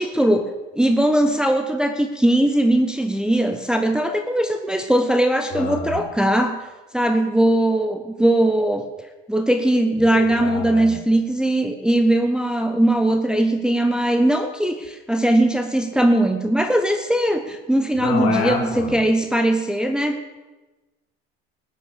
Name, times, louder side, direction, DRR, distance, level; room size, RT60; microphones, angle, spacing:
voice 1, 0.0-6.6 6.9-8.8 9.3-20.2, right 1 dB, 5° right, 5 dB, 1.0 m, -20 dB
voice 2, 5.5-6.0 10.1-11.0 18.0-18.9, left 5 dB, 60° left, 2 dB, 4.3 m, -27 dB
14.0 x 8.9 x 6.7 m, 1.2 s
supercardioid pair, 90°, 30 cm